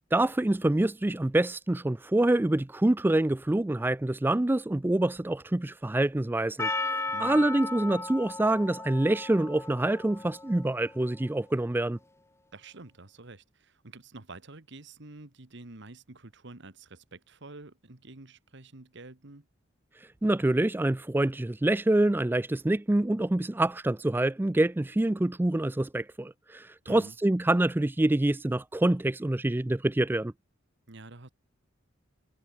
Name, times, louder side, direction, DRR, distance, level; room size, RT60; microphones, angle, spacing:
voice 1, 0.1-12.0 20.2-30.3, right 1 dB, 10° right, 0.3 m, -26 dB
Percussion, 6.6-11.1, left 3 dB, 15° left, 1.2 m, -35 dB
voice 2, 7.1-7.5 12.5-19.5 26.9-27.2 30.9-31.3, right 2 dB, 60° right, 1.7 m, -48 dB
head